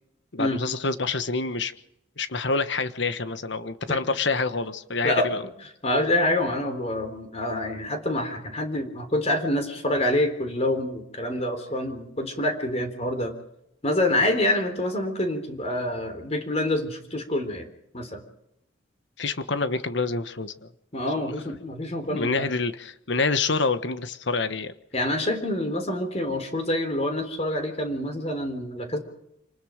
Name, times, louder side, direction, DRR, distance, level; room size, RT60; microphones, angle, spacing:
voice 1, 0.3-1.7 2.2-5.4 19.2-20.7 21.2-21.3 22.1-24.7, left 4 dB, 65° left, 11 dB, 1.4 m, -27 dB
voice 2, 5.0-13.3 13.8-17.7 17.9-18.2 20.9-22.5 24.9-29.0, left 1 dB, 35° left, 7 dB, 3.7 m, -27 dB
27.5 x 20.0 x 5.2 m, 0.79 s
head